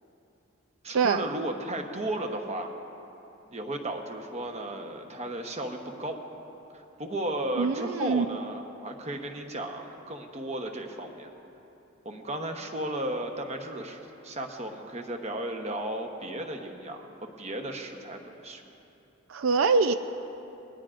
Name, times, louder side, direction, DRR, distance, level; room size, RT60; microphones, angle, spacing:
voice 1, 0.8-2.7 3.5-6.2 6.7-11.3 12.0-14.0 14.2-17.1 17.4-18.6, right 1 dB, 35° right, 3 dB, 1.0 m, -34 dB
voice 2, 7.6-8.3 19.3-19.9, right 4 dB, 85° right, 10 dB, 0.4 m, -24 dB
20.0 x 18.5 x 2.5 m, 2.9 s
head